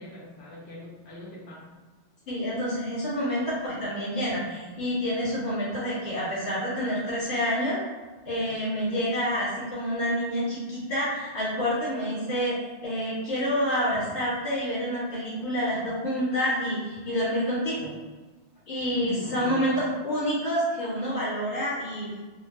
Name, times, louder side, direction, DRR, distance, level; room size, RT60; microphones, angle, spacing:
voice 1, 0.0-1.7 18.9-19.8, left 2 dB, 55° left, -7 dB, 0.8 m, -40 dB
voice 2, 2.3-7.8 8.3-17.9 18.7-22.1, equal, 70° left, -9 dB, 1.8 m, -28 dB
3.8 x 2.1 x 2.6 m, 1.3 s
omnidirectional pair, 1.2 m